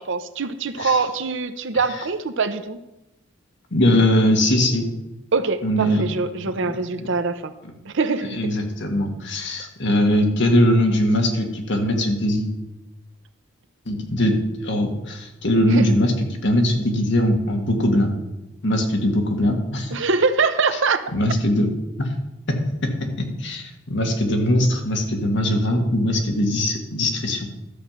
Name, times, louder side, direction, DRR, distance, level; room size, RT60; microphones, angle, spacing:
voice 1, 0.0-2.8 5.3-7.5 7.9-8.4 15.7-15.9 19.9-21.0, right 4 dB, 65° right, 11 dB, 0.8 m, -23 dB
voice 2, 3.7-4.9 5.6-6.0 7.0-7.1 8.3-12.5 13.9-16.1 16.4-18.1 18.6-20.0 21.1-21.7 22.0-22.1 22.5-27.5, left 1 dB, 65° left, 2 dB, 1.9 m, -21 dB
12.5 x 5.4 x 7.4 m, 0.95 s
head